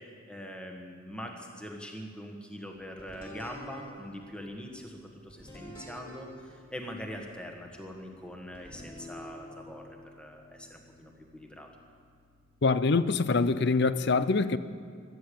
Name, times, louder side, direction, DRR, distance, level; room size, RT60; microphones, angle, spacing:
voice 1, 0.0-9.8 10.2-11.7, equal, 5° left, 2 dB, 1.5 m, -43 dB
sound 1, 3.0-13.6, equal, 25° left, 5.6 m, -51 dB
voice 2, 12.6-14.6, left 3 dB, 55° left, 14 dB, 0.5 m, -24 dB
13.5 x 12.5 x 8.6 m, 2.1 s
head